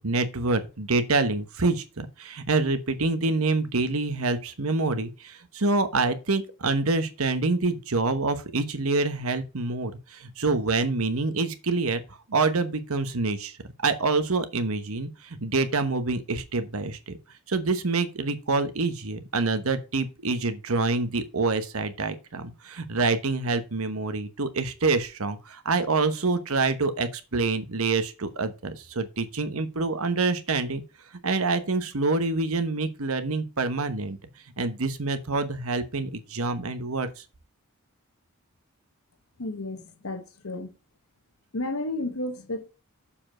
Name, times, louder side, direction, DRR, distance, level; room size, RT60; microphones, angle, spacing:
voice 1, 0.0-12.0 12.3-13.6 13.8-17.2 17.5-30.8 31.2-34.2 34.6-37.2, right 3 dB, 75° right, 1.1 m, -26 dB
voice 2, 39.4-40.7 41.5-42.7, left 2 dB, 75° left, 1.1 m, -32 dB
7.1 x 5.0 x 6.1 m
head